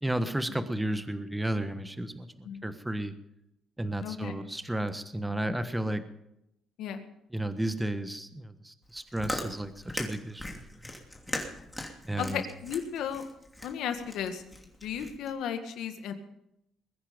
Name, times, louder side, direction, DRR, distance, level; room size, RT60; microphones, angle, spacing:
voice 1, 0.0-3.1 3.8-6.0 7.3-10.8 12.0-12.4, right 1 dB, 10° right, 10 dB, 1.3 m, -33 dB
voice 2, 4.0-4.3 6.8-7.1 12.2-13.2 13.6-14.4 14.8-16.1, left 8 dB, 75° left, 8 dB, 1.6 m, -34 dB
Chewing mastication, 8.8-15.3, left 1 dB, 10° left, 2.9 m, -39 dB
21.5 x 10.0 x 5.2 m, 0.83 s
cardioid pair, 80°, 0 cm